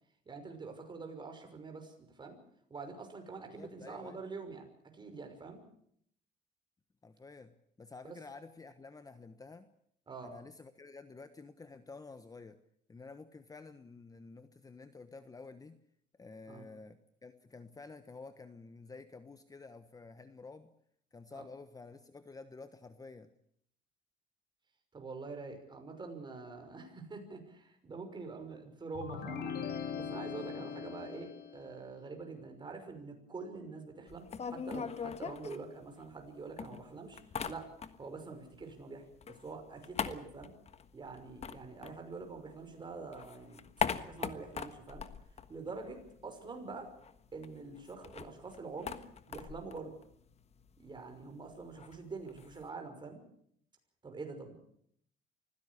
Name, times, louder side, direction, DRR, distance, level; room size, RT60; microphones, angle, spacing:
voice 1, 0.3-2.4 2.7-4.7 4.9-5.6 8.0-8.2 10.1-10.3 16.5-16.6 21.3-21.4 24.9-37.2 37.4-37.7 38.0-40.5 40.9-43.6 43.9-45.0 45.5-46.9 47.3-49.0 49.3-49.9 50.8-53.2 54.0-54.6, right 4 dB, 25° right, 5 dB, 5.9 m, -45 dB
voice 2, 3.5-4.2 7.0-9.7 10.2-12.6 12.9-15.8 16.2-20.7 21.1-23.3, left 3 dB, 20° left, 11 dB, 1.2 m, -51 dB
sound 1, 29.0-31.8, left 7 dB, 65° left, 2.7 m, -40 dB
sound 2, 34.1-36.3 36.6-38.2 38.5-42.6 43.0-46.3 46.5-46.6 46.9-52.7, left 7 dB, 40° left, 1.4 m, -41 dB
24.5 x 16.0 x 8.5 m, 0.69 s
cardioid pair, 110°, 17 cm